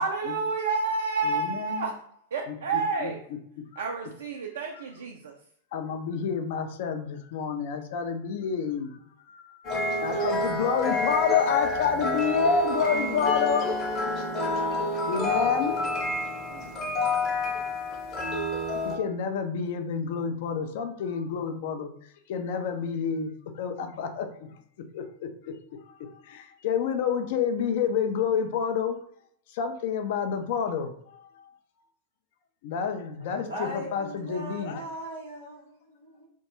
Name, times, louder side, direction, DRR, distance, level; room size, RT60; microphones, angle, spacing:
voice 1, 0.0-2.0 2.3-3.2 3.8-5.3 16.5-17.1, right 4 dB, 65° right, 1 dB, 0.3 m, -30 dB
voice 2, 1.2-1.9 2.5-3.1 3.7-3.9 4.7-4.8 5.7-9.0 9.3-9.6 10.0-13.7 15.1-15.8 18.9-21.9 22.3-24.3 24.9-25.5 26.0-29.0 29.5-31.2 32.6-34.8, left 6 dB, 50° left, 7 dB, 0.4 m, -29 dB
sound 1, 9.6-19.0, left 2 dB, 30° left, 0.8 m, -28 dB
voice 3, 33.2-36.3, equal, 85° left, -6 dB, 0.7 m, -39 dB
2.3 x 2.1 x 2.9 m, 0.66 s
figure-of-eight pair, 90°, 0 cm